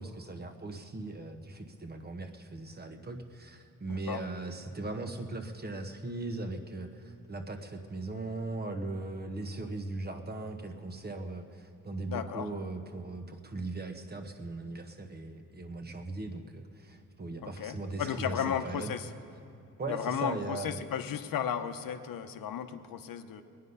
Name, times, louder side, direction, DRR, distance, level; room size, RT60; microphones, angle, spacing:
voice 1, 0.0-18.9 19.8-20.7, right 2 dB, 30° right, 6 dB, 1.0 m, -39 dB
voice 2, 3.9-4.2 12.1-12.5 17.4-19.1 19.9-23.4, left 9 dB, 80° left, 8 dB, 0.8 m, -34 dB
21.0 x 9.6 x 5.5 m, 2.5 s
cardioid pair, 115°, 34 cm